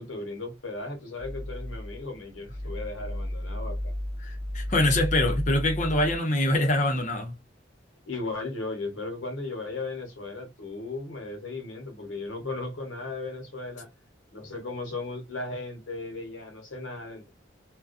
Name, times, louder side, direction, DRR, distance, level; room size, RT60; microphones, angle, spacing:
voice 1, 0.0-3.9 8.1-13.9 14.3-17.3, left 3 dB, 80° left, 1.0 m, -36 dB
sound 1, 1.2-6.2, left 1 dB, 85° right, 0.9 m, -33 dB
voice 2, 4.2-7.3, left 1 dB, 40° left, 0.6 m, -24 dB
2.3 x 2.2 x 2.4 m
head